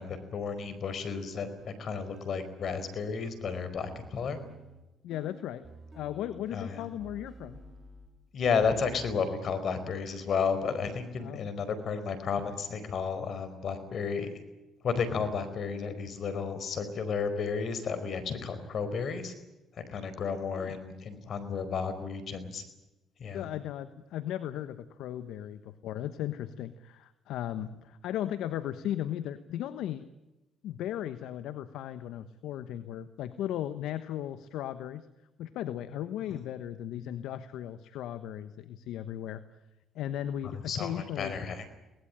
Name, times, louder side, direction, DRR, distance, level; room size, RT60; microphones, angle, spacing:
voice 1, 0.0-4.4 6.5-6.8 8.3-14.3 14.8-19.3 19.7-22.6 23.2-23.5 40.4-41.7, left 5 dB, 55° left, 12 dB, 4.6 m, -32 dB
sound 1, 1.1-8.2 8.6-9.3, right 4 dB, 30° right, 3.8 m, -52 dB
voice 2, 5.0-5.7 5.9-7.6 11.2-11.5 20.5-20.8 23.3-30.1 30.6-35.1 35.4-39.4 39.9-41.3, left 11 dB, 75° left, 12 dB, 1.1 m, -36 dB
23.5 x 19.5 x 9.0 m, 1.0 s
supercardioid pair, 65°, 0 cm